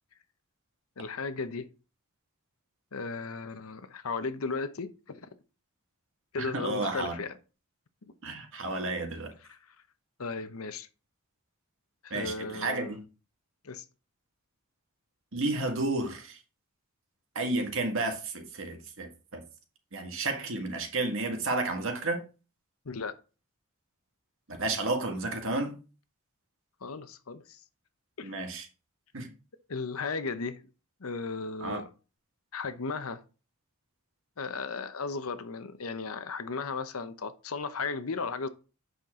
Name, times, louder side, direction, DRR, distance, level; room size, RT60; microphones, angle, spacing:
voice 1, 1.0-1.7 2.9-5.3 6.3-7.3 8.0-8.1 9.5-9.6 10.2-10.9 12.0-13.0 13.6-13.8 22.9-23.1 26.8-27.6 28.2-28.3 29.7-30.6 31.0-31.8 32.5-33.2 34.4-38.5, left 4 dB, 75° left, 0.8 m, -35 dB
voice 2, 6.4-7.2 8.2-9.3 12.1-13.0 15.3-16.4 17.4-19.4 19.9-22.2 24.6-25.8 28.2-28.7 29.1-29.3 31.6-31.8, right 2 dB, 65° right, 1.8 m, -31 dB
8.1 x 5.9 x 3.7 m
head